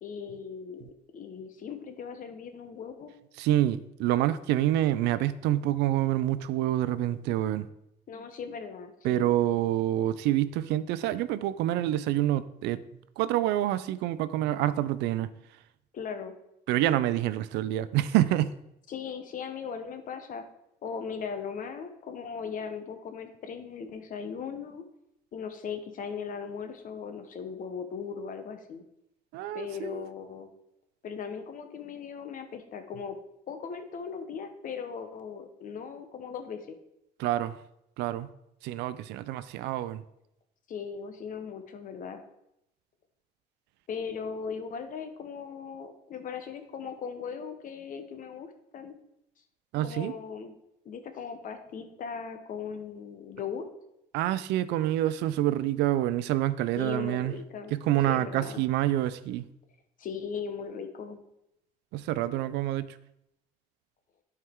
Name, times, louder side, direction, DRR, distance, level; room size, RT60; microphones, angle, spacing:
voice 1, 0.0-0.9 1.1-3.1 8.1-9.3 15.9-16.3 18.9-20.4 20.8-24.8 25.3-28.8 29.5-30.5 31.0-33.2 33.5-36.8 40.7-42.2 43.9-48.5 48.7-48.9 49.8-50.5 50.8-53.7 56.8-57.7 58.0-58.6 60.0-61.2, left 6 dB, 55° left, 8 dB, 1.0 m, -38 dB
voice 2, 3.4-7.7 9.0-12.8 13.2-15.3 16.7-18.5 29.3-30.1 37.2-37.6 38.0-38.3 38.6-40.0 49.7-50.1 54.1-57.3 57.7-59.5 61.9-63.0, right 13 dB, 85° right, 15 dB, 0.4 m, -27 dB
11.0 x 4.5 x 3.6 m, 0.82 s
cardioid pair, 110°, 17 cm